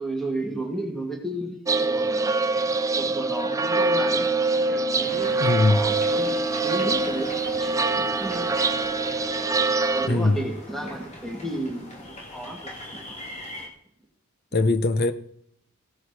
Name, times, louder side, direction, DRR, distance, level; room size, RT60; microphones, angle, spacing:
voice 1, 0.0-2.4 2.7-4.3 4.7-6.3 6.6-8.6 9.9-13.2, right 1 dB, ahead, 2.0 m, -33 dB
sound 1, 1.7-10.1, right 3 dB, 15° right, 0.4 m, -24 dB
Wind instrument woodwind instrument, 3.7-10.4, right 1 dB, 75° right, 0.8 m, -35 dB
sound 2, 5.0-13.7, left 1 dB, 30° left, 2.1 m, -41 dB
voice 2, 5.4-5.9 10.1-10.4 14.5-15.1, left 2 dB, 45° left, 0.7 m, -21 dB
16.5 x 7.7 x 4.8 m
head